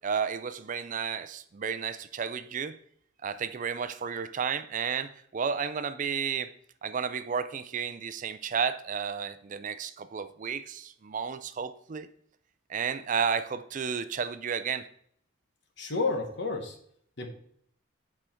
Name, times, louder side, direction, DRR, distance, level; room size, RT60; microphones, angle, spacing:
voice 1, 0.0-2.8 3.2-6.5 6.8-12.1 12.7-14.9, right 6 dB, 40° right, 0.4 m, -32 dB
voice 2, 15.8-16.8 17.2-17.3, left 3 dB, 60° left, 1.3 m, -30 dB
8.4 x 4.9 x 4.4 m
head